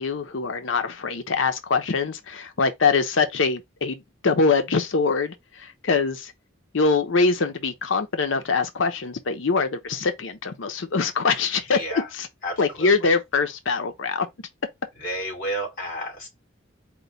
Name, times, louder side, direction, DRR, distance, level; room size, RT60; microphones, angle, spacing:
voice 1, 0.0-6.3 6.7-11.8 12.1-12.3 12.6-14.3, left 4 dB, 90° left, 0.7 m, -23 dB
voice 2, 11.7-12.1 12.4-12.9 15.0-16.3, equal, 50° left, 3.2 m, -31 dB
4.5 x 2.2 x 3.9 m
head